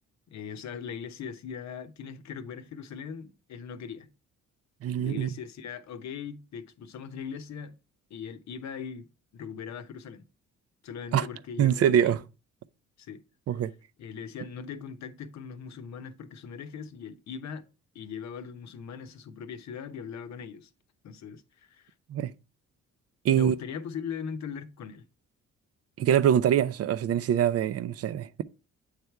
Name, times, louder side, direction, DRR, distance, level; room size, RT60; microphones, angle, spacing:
voice 1, 0.3-4.1 5.0-7.7 8.1-10.3 10.8-12.2 13.0-13.2 13.6-13.7 14.0-17.7 17.9-20.7 21.0-21.9 23.3-25.1, left 7 dB, 65° left, 0.8 m, -40 dB
voice 2, 4.8-5.3 11.1-11.3 11.6-12.2 13.5-13.7 22.1-22.3 23.2-23.5 26.0-28.4, right 9 dB, 55° right, 0.5 m, -24 dB
8.1 x 3.4 x 4.5 m
cardioid pair, 90°, 30 cm